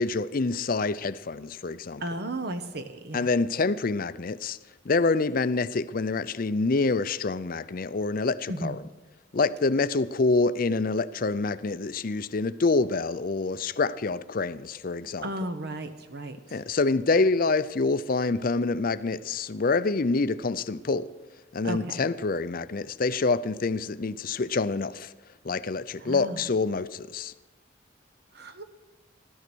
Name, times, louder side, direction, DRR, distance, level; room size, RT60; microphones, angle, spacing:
voice 1, 0.0-2.0 3.1-4.6 4.8-8.8 9.3-15.3 16.5-21.1 21.5-25.1 25.4-27.3, left 3 dB, 45° left, 0.5 m, -26 dB
voice 2, 2.0-3.3 8.5-8.8 15.2-16.4 21.6-22.0 26.0-26.4 28.3-28.6, right 1 dB, 55° right, 1.0 m, -34 dB
16.5 x 13.0 x 6.2 m
head